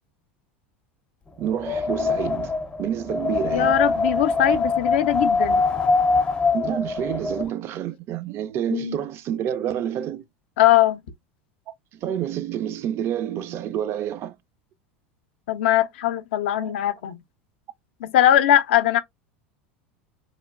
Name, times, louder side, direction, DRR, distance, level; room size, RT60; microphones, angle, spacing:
Wind, 1.4-7.5, left 3 dB, 15° left, 0.4 m, -23 dB
voice 1, 1.4-2.5 2.8-3.8 6.5-10.2 11.9-14.4 16.6-16.7, right 10 dB, 45° right, 0.3 m, -28 dB
voice 2, 3.5-5.6 8.7-9.0 10.6-11.0 15.5-17.2 18.0-19.0, left 12 dB, 75° left, 0.4 m, -20 dB
3.1 x 2.2 x 2.2 m
hypercardioid pair, 100°, 6 cm